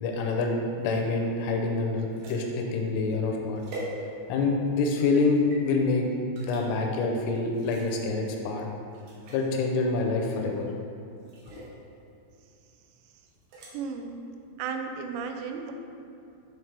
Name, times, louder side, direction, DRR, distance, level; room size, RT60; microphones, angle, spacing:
voice 1, 0.0-3.6 4.3-6.1 6.4-8.7 9.3-10.7, left 3 dB, 85° left, 2 dB, 3.1 m, -26 dB
sound 1, 0.8-4.5 5.0-5.6 6.3-6.6 7.5-8.1 8.5-8.6 8.9-9.5 10.3-10.7 11.2-11.8 13.3-13.7, equal, 70° right, 2.5 m, -44 dB
voice 2, 13.7-14.2 14.6-15.7, right 5 dB, 90° right, 5 dB, 3.2 m, -34 dB
10.0 x 3.7 x 3.3 m, 2.6 s
omnidirectional pair, 5.7 m